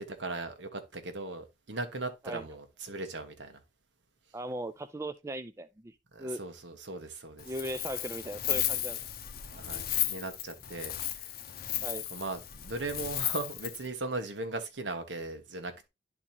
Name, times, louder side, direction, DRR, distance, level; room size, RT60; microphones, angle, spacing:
voice 1, 0.1-3.6 6.1-7.5 9.5-11.4 12.1-15.9, right 2 dB, 85° right, 1.2 m, -38 dB
voice 2, 4.3-6.4 7.4-9.0 11.8-12.0, right 1 dB, 15° right, 0.4 m, -38 dB
Wind, 7.4-13.9, left 11 dB, 55° left, 0.7 m, -35 dB
11.0 x 4.1 x 2.8 m
head